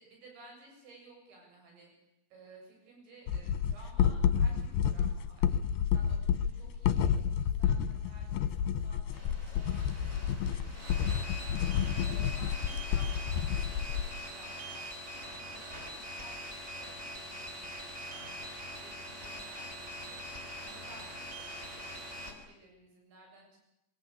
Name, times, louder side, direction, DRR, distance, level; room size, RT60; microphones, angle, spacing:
voice 1, 0.0-23.6, right 2 dB, 65° right, 0 dB, 9.7 m, -57 dB
sound 1, 3.3-14.1, left 8 dB, 70° left, 2.8 m, -30 dB
sound 2, 9.1-22.3, equal, 15° right, 5.2 m, -43 dB
24.0 x 23.0 x 8.7 m, 0.88 s
omnidirectional pair, 5.6 m